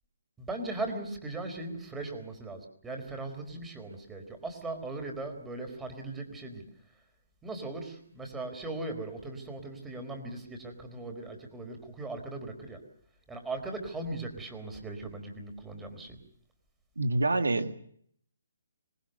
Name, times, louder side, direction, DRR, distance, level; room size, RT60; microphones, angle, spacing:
voice 1, 0.4-6.6 7.4-12.8 13.3-16.2, right 2 dB, 10° right, 5 dB, 4.3 m, -39 dB
voice 2, 17.0-17.7, right 2 dB, 90° right, 8 dB, 1.9 m, -26 dB
26.0 x 20.0 x 6.7 m, 0.64 s
hypercardioid pair, 150°, 0 cm